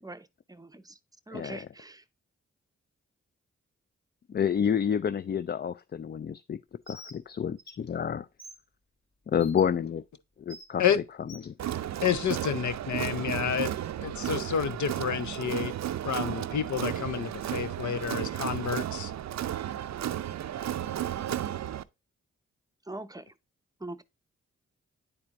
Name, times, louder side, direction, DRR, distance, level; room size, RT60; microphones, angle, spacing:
voice 1, 0.0-1.0 1.3-2.0 22.9-23.3 23.8-24.0, right 2 dB, 10° right, 0.7 m, -42 dB
voice 2, 4.3-6.6 6.9-8.3 9.3-10.0 10.4-10.9 11.4-11.5, left 8 dB, 35° left, 0.4 m, -29 dB
Bird, 6.9-7.2 7.6-7.7 8.4-8.6 9.4-9.6 10.5-10.7 11.3-11.5, left 1 dB, 20° left, 2.7 m, -46 dB
Crowd, 11.6-21.8, right 11 dB, 65° right, 0.5 m, -33 dB
voice 3, 12.0-13.7 14.0-15.7 16.0-19.1, left 8 dB, 75° left, 0.8 m, -29 dB
9.8 x 4.4 x 2.5 m
cardioid pair, 45°, 30 cm